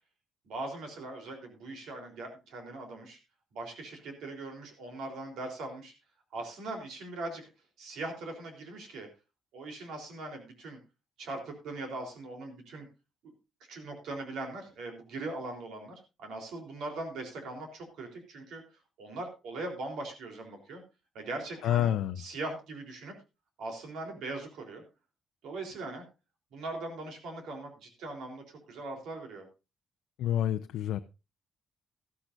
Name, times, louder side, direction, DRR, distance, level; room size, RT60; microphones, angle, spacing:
voice 1, 0.4-3.2 3.5-5.9 6.3-7.5 7.8-9.1 9.5-10.8 11.2-12.9 13.2-13.3 13.7-20.8 21.1-23.1 23.6-24.8 25.4-26.0 26.5-29.5, right 2 dB, 80° right, 3.8 m, -40 dB
voice 2, 21.6-22.2 30.2-31.0, left 11 dB, 85° left, 0.5 m, -28 dB
13.5 x 13.5 x 2.6 m
cardioid pair, 90°, 0 cm